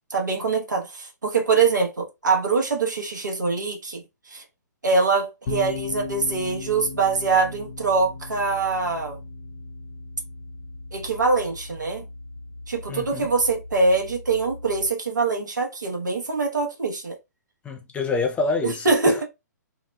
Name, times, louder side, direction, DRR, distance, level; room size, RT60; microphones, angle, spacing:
voice 1, 0.1-4.4 4.8-9.2 10.9-12.0 12.7-17.2 18.6-19.2, right 4 dB, 85° right, 1.0 m, -23 dB
sound 1, 5.4-14.9, left 4 dB, 50° left, 0.8 m, -38 dB
voice 2, 12.9-13.3 17.6-19.2, left 3 dB, 15° left, 0.4 m, -27 dB
2.8 x 2.0 x 2.2 m
figure-of-eight pair, 125°, 10 cm